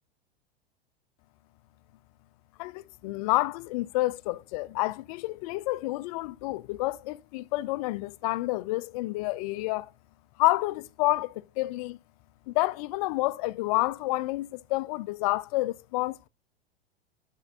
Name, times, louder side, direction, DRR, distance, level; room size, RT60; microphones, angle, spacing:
voice 1, 2.6-9.9 10.4-12.0 12.5-16.3, left 20 dB, 40° left, 0.5 m, -29 dB
10.5 x 9.0 x 2.5 m
figure-of-eight pair, 90°, 31 cm